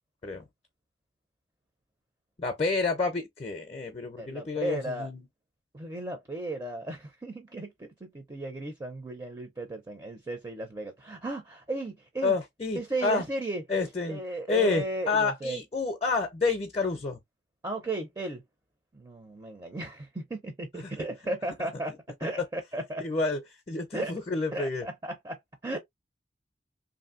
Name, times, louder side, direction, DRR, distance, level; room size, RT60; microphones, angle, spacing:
voice 1, 2.4-5.3 12.2-13.2 13.7-14.2 14.5-17.2 20.7-20.9 23.0-23.4 23.7-24.9, left 4 dB, 35° left, 0.5 m, -29 dB
voice 2, 4.2-5.1 5.7-12.3 12.7-13.6 14.1-15.6 17.6-18.4 18.9-21.9 22.2-23.1 23.9-24.1 24.5-25.8, right 2 dB, 20° right, 0.5 m, -35 dB
3.0 x 2.6 x 2.4 m
head